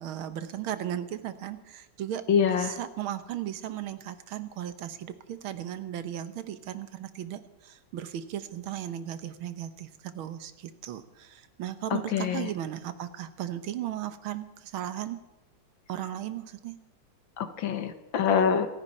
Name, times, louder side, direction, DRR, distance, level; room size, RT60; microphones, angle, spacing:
voice 1, 0.0-15.2 15.9-16.8, right 11 dB, 75° right, 11 dB, 1.8 m, -36 dB
voice 2, 2.3-2.8 11.9-12.5 17.4-18.7, left 7 dB, 65° left, 9 dB, 1.9 m, -25 dB
27.0 x 9.9 x 4.2 m, 1.1 s
omnidirectional pair, 2.3 m